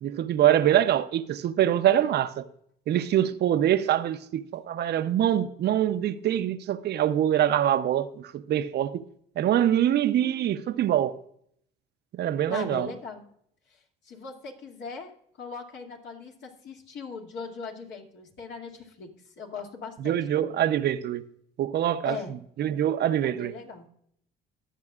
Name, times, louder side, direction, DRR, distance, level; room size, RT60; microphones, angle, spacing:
voice 1, 0.0-2.3 2.9-9.0 9.4-11.2 12.1-12.9 20.0-21.2 21.6-22.2 22.6-23.5, right 11 dB, 55° right, 0.7 m, -24 dB
voice 2, 12.5-13.2 13.7-20.6 22.0-22.4 23.2-23.9, left 4 dB, 65° left, 2.4 m, -40 dB
22.5 x 7.6 x 2.4 m
supercardioid pair, 80°, 20 cm